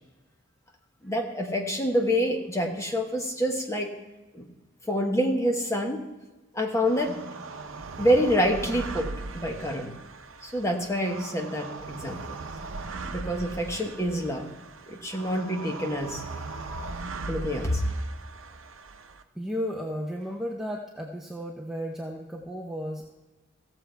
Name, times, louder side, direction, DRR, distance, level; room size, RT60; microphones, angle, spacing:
voice 1, 1.0-3.9 4.3-4.5 4.9-6.0 6.5-7.1 8.0-9.1 9.3-9.9 10.4-12.4 13.0-14.4 14.9-16.9 17.3-17.8, equal, 15° left, 1 dB, 1.3 m, -27 dB
sound 1, 6.8-19.2, right 3 dB, 80° right, 0.8 m, -39 dB
voice 2, 19.4-23.1, equal, ahead, -1 dB, 0.7 m, -34 dB
15.5 x 7.2 x 4.5 m, 1.2 s
head